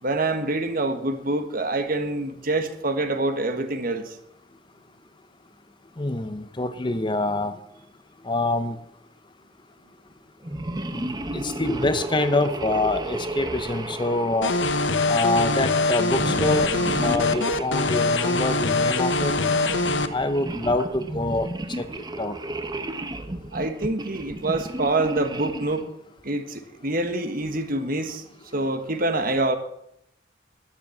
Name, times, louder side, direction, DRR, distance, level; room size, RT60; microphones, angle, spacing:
voice 1, 0.0-4.2 23.5-25.9 26.2-28.2 28.5-29.6, right 2 dB, 50° right, 1.5 m, -26 dB
voice 2, 6.0-7.6 8.2-8.8 10.9-14.5 15.1-16.7 17.0-19.3 20.1-21.5 21.8-21.9 22.2-22.4, left 2 dB, 25° left, 0.7 m, -25 dB
sound 1, 10.4-15.3 16.1-18.4 19.1-25.9, right 1 dB, 20° right, 1.0 m, -33 dB
sound 2, 14.4-20.1, left 3 dB, 70° left, 1.0 m, -23 dB
12.0 x 11.0 x 7.3 m
head